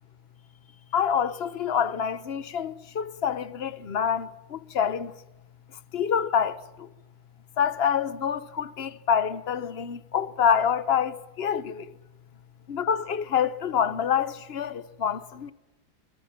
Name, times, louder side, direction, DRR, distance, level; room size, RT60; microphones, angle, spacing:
voice 1, 0.9-5.1 5.9-6.9 7.6-11.9 12.7-15.5, left 8 dB, 45° left, 0.9 m, -27 dB
25.0 x 23.0 x 7.4 m
omnidirectional pair, 2.2 m